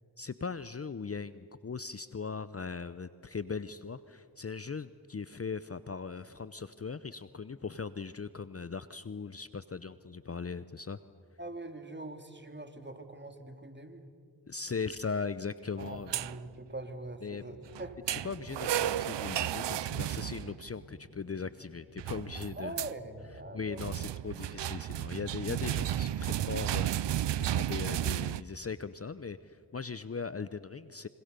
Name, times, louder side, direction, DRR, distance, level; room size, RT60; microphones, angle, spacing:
voice 1, 0.2-11.0 14.5-16.1 17.2-17.4 18.1-22.7 23.5-31.1, left 5 dB, 35° left, 15 dB, 0.8 m, -39 dB
voice 2, 11.4-14.1 15.8-18.2 22.6-24.0 24.3-24.6, right 2 dB, 25° right, 6 dB, 2.8 m, -43 dB
sound 1, 15.8-16.5 17.7-20.8 22.0-22.9 23.7-28.4, right 12 dB, 80° right, 0.6 m, -33 dB
sound 2, 16.4-24.2, left 2 dB, 80° left, 7.6 m, -57 dB
26.5 x 25.5 x 6.8 m, 2.3 s
cardioid pair, 45°, 42 cm